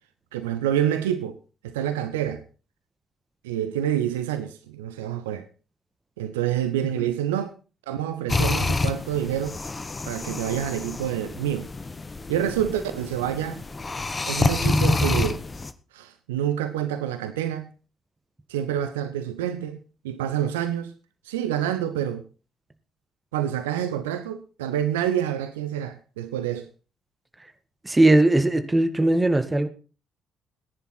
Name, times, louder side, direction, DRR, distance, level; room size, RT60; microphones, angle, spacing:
voice 1, 0.3-1.4 1.6-2.4 3.4-5.5 6.2-7.5 7.9-9.6 10.1-11.7 12.3-13.6 14.3-15.4 15.9-17.7 18.5-19.8 20.0-20.9 21.3-22.2 23.3-26.7, right 10 dB, 75° right, 0.8 m, -27 dB
sound 1, 8.3-15.7, left 3 dB, 25° left, 1.2 m, -27 dB
voice 2, 27.8-29.7, right 2 dB, 15° right, 1.9 m, -19 dB
19.0 x 10.5 x 4.4 m
figure-of-eight pair, 45°, 0 cm